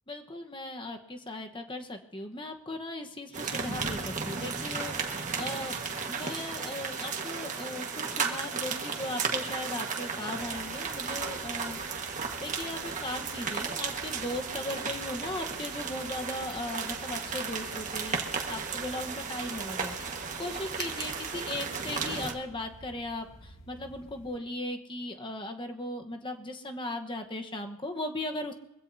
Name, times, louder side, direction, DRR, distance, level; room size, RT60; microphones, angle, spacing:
voice 1, 0.1-5.8 6.1-11.8 12.4-18.2 18.5-28.5, left 1 dB, 25° left, 4 dB, 1.1 m, -37 dB
sound 1, 3.3-22.3, right 5 dB, 35° right, 1.5 m, -34 dB
sound 2, 10.4-24.4, right 1 dB, 80° left, 2.0 m, -52 dB
24.0 x 16.0 x 2.8 m, 0.92 s
head